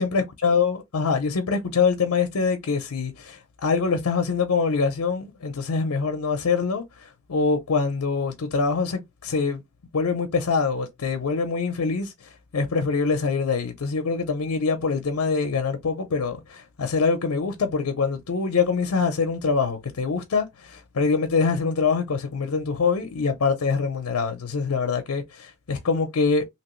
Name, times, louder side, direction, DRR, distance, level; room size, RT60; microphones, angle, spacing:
voice 1, 0.0-6.8 7.3-9.6 9.9-12.1 12.5-26.5, left 5 dB, 90° left, 0.6 m, -24 dB
3.0 x 2.9 x 3.0 m
head